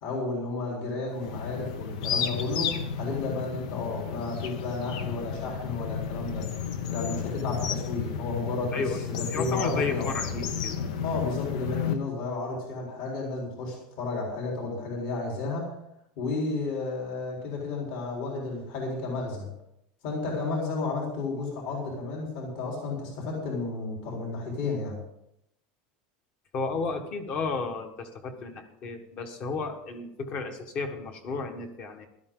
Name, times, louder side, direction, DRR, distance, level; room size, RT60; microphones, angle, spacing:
voice 1, 0.0-6.5 6.9-10.1 11.0-15.7 16.2-19.5 20.0-25.0, left 3 dB, 50° left, -2 dB, 4.1 m, -32 dB
sound 1, 1.1-11.9, left 7 dB, 75° left, 1.2 m, -32 dB
voice 2, 9.3-10.8 26.5-32.1, left 4 dB, 30° left, 6 dB, 1.5 m, -33 dB
16.5 x 12.5 x 3.8 m, 0.79 s
supercardioid pair, 180°, 4 cm